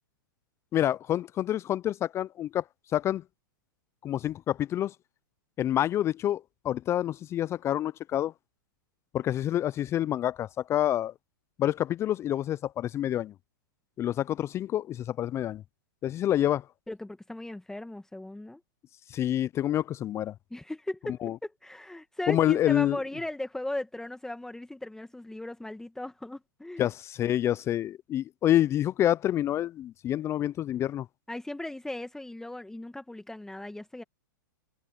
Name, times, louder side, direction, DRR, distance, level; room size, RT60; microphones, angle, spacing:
voice 1, 0.7-2.6 2.9-3.2 4.0-4.9 5.6-8.3 9.1-11.1 11.6-13.3 14.0-15.6 16.0-16.6 19.1-20.3 21.2-21.4 22.3-23.0 26.8-31.1, left 12 dB, 25° left, 0.4 m, -27 dB
voice 2, 16.9-18.6 20.5-26.9 31.3-34.0, left 1 dB, 5° left, 1.3 m, -37 dB
hypercardioid pair, 120°, 11 cm